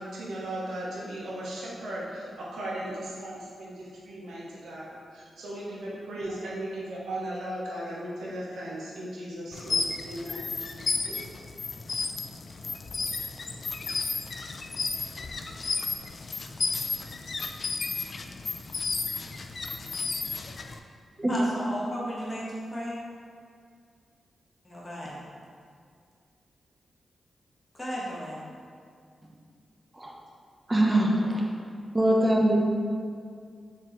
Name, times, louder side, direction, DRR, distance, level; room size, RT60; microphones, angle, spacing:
voice 1, 0.0-10.5 11.1-11.2, right 1 dB, 85° right, 1.0 m, -37 dB
sound 1, 9.5-20.8, left 4 dB, 55° left, 0.3 m, -33 dB
voice 2, 21.3-23.0 24.6-25.2 27.7-28.5, equal, 30° left, 1.2 m, -34 dB
voice 3, 30.7-31.4 31.9-32.6, right 1 dB, 25° right, 0.7 m, -23 dB
4.6 x 3.8 x 3.0 m
cardioid pair, 55°, 0 cm